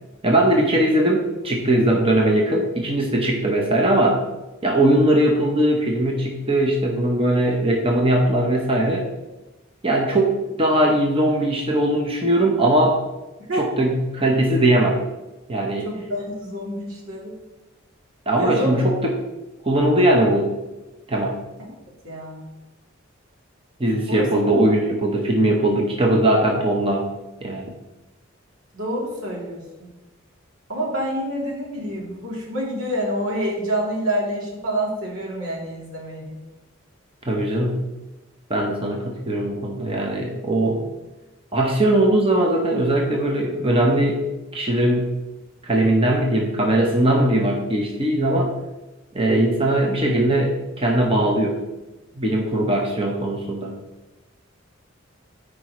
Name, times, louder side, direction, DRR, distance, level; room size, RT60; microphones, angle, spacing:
voice 1, 0.2-4.2 4.6-9.0 9.8-13.0 13.6-15.0 15.5-15.9 18.3-19.1 19.6-20.5 21.1-21.4 23.8-27.1 27.4-27.7 37.3-37.8 38.5-40.9 41.5-44.2 44.5-45.1 45.6-48.5 49.1-51.6 52.2-53.7, right 1 dB, 25° right, 0 dB, 1.0 m, -20 dB
voice 2, 15.8-17.3 18.4-18.9 21.6-21.7 22.0-22.4 24.1-24.3 24.5-24.6 28.7-29.9 30.7-36.4, equal, 90° right, -4 dB, 2.8 m, -27 dB
13.5 x 5.0 x 3.1 m, 1.1 s
head